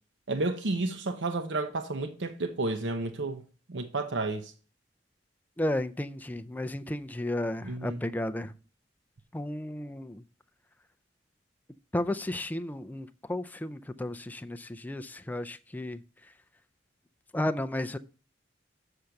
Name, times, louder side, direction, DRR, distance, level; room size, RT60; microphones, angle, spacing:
voice 1, 0.3-3.4 3.7-4.5 7.6-8.0, right 2 dB, 75° right, 0.7 m, -31 dB
voice 2, 5.6-8.5 9.3-10.2 11.9-16.0 17.3-18.0, left 1 dB, 10° left, 0.4 m, -33 dB
6.8 x 6.4 x 5.8 m
head